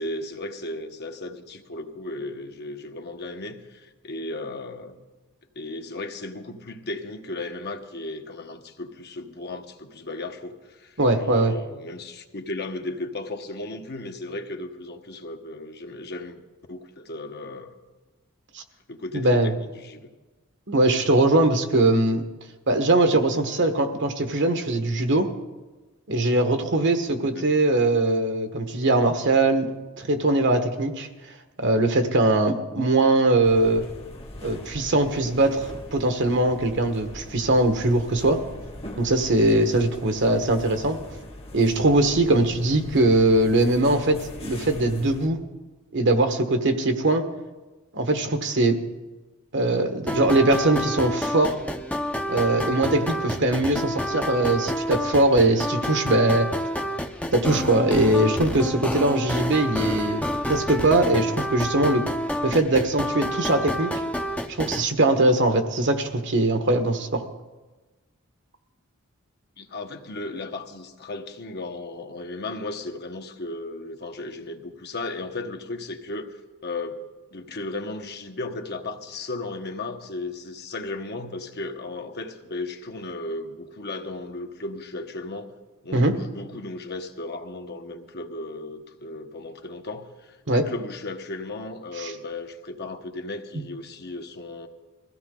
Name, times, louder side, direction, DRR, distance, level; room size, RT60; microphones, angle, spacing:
voice 1, 0.0-5.0 5.5-16.4 16.7-17.7 18.9-20.1 27.3-27.5 69.6-76.3 76.6-77.0 77.3-85.5 85.8-94.7, left 2 dB, 50° left, 5 dB, 1.2 m, -35 dB
voice 2, 11.0-11.5 18.5-18.6 19.1-19.5 20.7-22.2 22.7-25.3 26.1-29.7 30.0-31.1 31.6-33.9 34.4-38.4 39.0-41.0 41.5-45.4 45.9-47.2 47.9-48.8 49.5-51.6 52.3-56.5 57.3-62.1 62.4-63.9 64.5-67.2 85.9-86.1 90.5-90.7 92.0-92.1, right 2 dB, 60° right, 6 dB, 1.4 m, -21 dB
sound 1, 33.4-45.3, left 1 dB, 30° left, 1.3 m, -41 dB
sound 2, 50.1-64.8, equal, 5° left, 0.8 m, -29 dB
22.0 x 15.5 x 3.9 m, 1.2 s
head